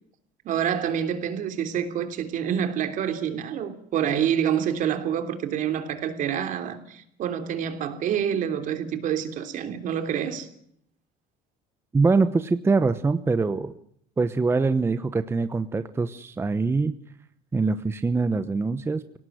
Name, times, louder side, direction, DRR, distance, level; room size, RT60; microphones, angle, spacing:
voice 1, 0.4-10.5, right 9 dB, 55° right, 3.2 m, -27 dB
voice 2, 11.9-13.7 14.2-16.9 17.5-19.2, right 4 dB, 15° right, 0.9 m, -23 dB
23.5 x 18.0 x 9.4 m
cardioid pair, 135°, 16 cm